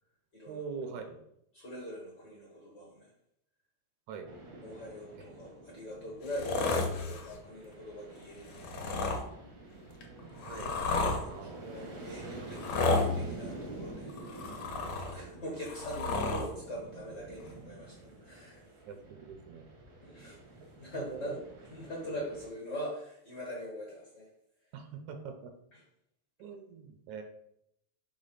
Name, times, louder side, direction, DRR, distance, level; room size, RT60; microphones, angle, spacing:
voice 1, 0.5-1.3 4.1-4.3 10.5-10.8 11.3-11.8 15.0-15.6 18.9-19.7 21.0-21.4 24.7-25.5 26.4-27.2, right 6 dB, 75° right, 5 dB, 1.8 m, -44 dB
voice 2, 1.5-3.1 4.6-8.8 11.2-14.2 15.1-18.7 20.0-20.4 20.8-21.4 21.7-24.3 25.7-25.8, equal, 45° left, -3 dB, 1.4 m, -42 dB
sound 1, 4.3-22.5, right 2 dB, 55° right, 1.0 m, -48 dB
sound 2, 6.2-7.3 8.5-9.2 10.0-11.2 12.5-13.1 14.1-15.2 15.6-16.5 17.5-17.6, left 3 dB, 65° left, 1.7 m, -32 dB
5.0 x 3.6 x 5.6 m, 0.78 s
omnidirectional pair, 3.5 m